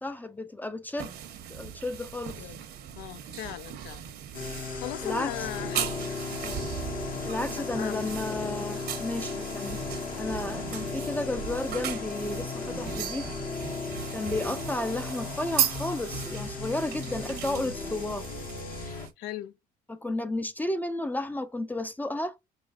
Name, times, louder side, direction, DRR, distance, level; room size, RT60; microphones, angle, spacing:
voice 1, 0.0-1.2 1.5-2.5 5.0-5.3 7.3-9.8 10.2-13.3 14.1-18.3 19.9-22.4, left 2 dB, 10° left, 0.4 m, -33 dB
sound 1, 1.0-19.1, right 10 dB, 70° right, 1.0 m, -37 dB
voice 2, 3.0-4.0 4.8-6.0 6.4-6.7 7.5-8.5 14.3-14.6 19.2-19.6, left 12 dB, 85° left, 0.5 m, -39 dB
sound 2, 4.3-19.1, left 4 dB, 55° left, 1.0 m, -36 dB
4.9 x 2.9 x 2.4 m
cardioid pair, 110°, 17 cm